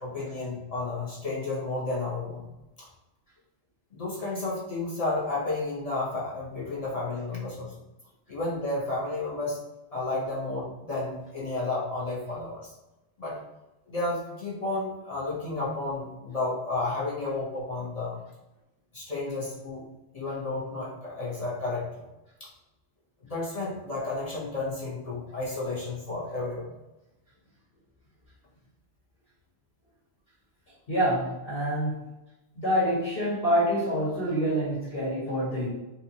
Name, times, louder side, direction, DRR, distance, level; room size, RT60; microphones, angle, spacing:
voice 1, 0.0-2.4 2.8-2.9 3.9-7.7 8.3-9.6 9.9-12.7 13.2-13.4 13.9-18.2 18.9-19.8 20.1-22.0 22.4-22.5 23.2-26.7, left 2 dB, 35° left, -6 dB, 0.9 m, -32 dB
voice 2, 30.9-32.0 32.6-35.7, equal, 50° left, -8 dB, 1.4 m, -26 dB
4.0 x 2.4 x 2.8 m, 1.0 s
omnidirectional pair, 1.2 m